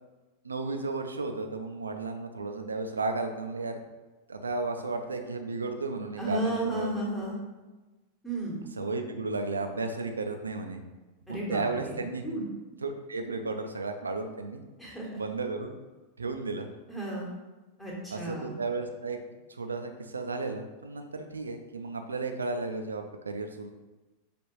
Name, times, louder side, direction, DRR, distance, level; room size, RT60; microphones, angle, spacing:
voice 1, 0.4-3.8 4.3-6.9 8.8-10.8 11.3-12.2 12.8-14.6 15.2-15.7 16.2-16.7 18.1-19.2 19.5-23.7, right 3 dB, 75° right, 5 dB, 0.4 m, -33 dB
voice 2, 6.2-7.4 8.2-8.6 11.3-11.9 12.2-12.5 14.8-15.2 16.9-17.3 17.8-18.5, right 1 dB, 10° left, -4 dB, 1.2 m, -33 dB
5.0 x 2.5 x 3.0 m, 1.2 s
figure-of-eight pair, 90°, 0 cm